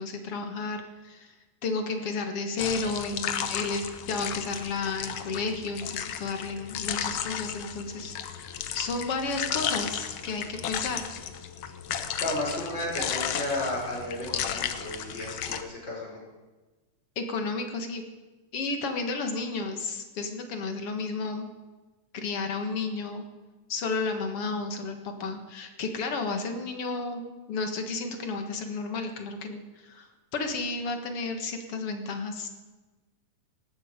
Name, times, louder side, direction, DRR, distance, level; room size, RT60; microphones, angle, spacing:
voice 1, 0.0-1.3 1.6-11.0 17.2-18.0 18.5-21.5 22.1-23.3 23.7-32.5, left 3 dB, 50° left, 5 dB, 2.1 m, -32 dB
sound 1, 2.6-15.6, left 9 dB, 70° left, 1.4 m, -34 dB
voice 2, 12.2-16.2, left 1 dB, 30° left, -3 dB, 6.1 m, -33 dB
19.0 x 14.5 x 5.2 m, 1.2 s
omnidirectional pair, 3.9 m